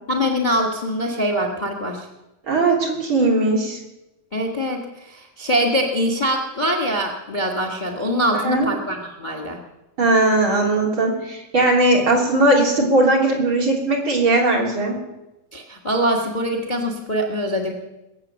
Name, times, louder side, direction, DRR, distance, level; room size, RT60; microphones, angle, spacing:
voice 1, 0.1-2.1 4.3-9.6 15.5-17.7, equal, 65° left, 2 dB, 0.4 m, -23 dB
voice 2, 2.5-3.8 8.3-8.7 10.0-15.0, right 2 dB, 35° right, -1 dB, 3.9 m, -18 dB
22.0 x 8.0 x 7.5 m, 0.97 s
omnidirectional pair, 3.9 m